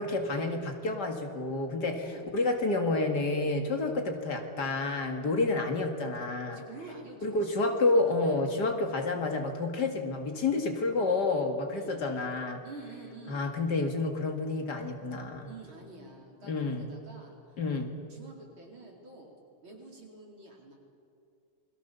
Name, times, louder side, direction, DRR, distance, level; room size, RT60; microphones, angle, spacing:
voice 1, 0.0-2.1 2.3-6.6 7.2-12.6 13.3-15.5 16.4-16.9 17.6-17.9, left 3 dB, 55° left, 5 dB, 2.5 m, -29 dB
voice 2, 6.5-8.6 11.7-12.0 12.6-13.5 15.4-17.6 18.1-19.3 19.6-20.8, right 3 dB, 75° right, -1 dB, 5.2 m, -48 dB
28.5 x 22.0 x 6.9 m, 2.5 s
omnidirectional pair, 2.2 m